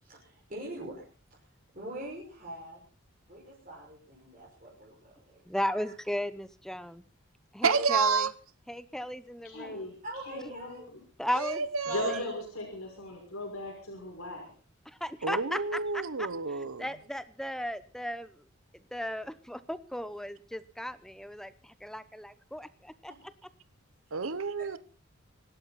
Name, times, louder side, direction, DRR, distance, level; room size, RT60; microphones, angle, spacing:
voice 1, 0.0-1.0 1.3-1.4 1.7-2.8 3.3-5.4 5.8-5.9 7.6-7.9 10.0-10.9 11.3-11.4 23.1-23.2 24.2-24.3 24.6-24.8, right 1 dB, 40° right, -4 dB, 5.9 m, -43 dB
voice 2, 5.5-7.0 7.5-8.3 8.7-9.9 11.2-12.2 14.9-15.6 15.9-16.3 16.8-18.4 18.9-23.1, equal, ahead, 14 dB, 0.8 m, -36 dB
voice 3, 7.6-8.3 11.4-12.2 15.2-16.9 24.1-24.8, right 5 dB, 75° right, 15 dB, 0.9 m, -29 dB
voice 4, 9.4-9.9 10.2-11.0 11.9-14.5, left 1 dB, 90° left, 1 dB, 5.8 m, -37 dB
25.5 x 12.0 x 4.2 m, 0.39 s
head